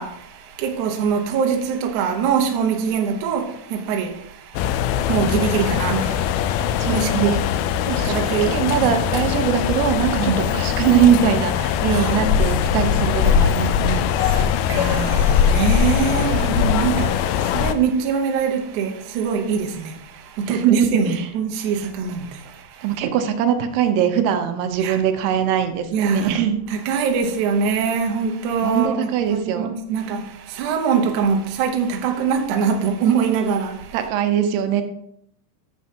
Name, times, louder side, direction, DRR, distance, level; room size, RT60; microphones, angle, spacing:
voice 1, 0.0-7.4 7.9-8.9 10.2-10.4 11.9-12.2 14.2-23.0 24.8-25.0 25.9-26.4 26.7-34.0, right 6 dB, 70° right, 2.0 m, -23 dB
sound 1, 4.6-17.7, left 8 dB, 80° left, 2.2 m, -21 dB
voice 2, 6.8-7.4 7.9-14.1 20.5-21.3 22.8-26.6 28.6-29.7 33.9-34.8, right 9 dB, 85° right, 2.8 m, -21 dB
11.0 x 7.9 x 2.9 m
omnidirectional pair, 4.7 m